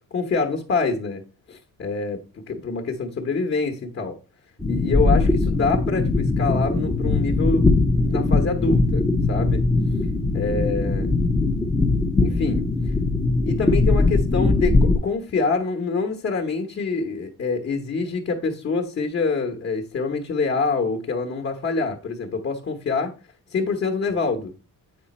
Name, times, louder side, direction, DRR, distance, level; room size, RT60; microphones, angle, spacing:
voice 1, 0.1-1.2 1.5-2.2 2.5-4.1 4.7-7.7 8.0-9.6 10.3-11.1 12.2-12.6 13.4-23.1 23.5-24.5, left 4 dB, 35° left, 3 dB, 1.2 m, -26 dB
sound 1, 4.6-15.0, left 3 dB, 10° left, 0.7 m, -20 dB
8.5 x 5.0 x 4.2 m, 0.31 s
cardioid pair, 165°, 36 cm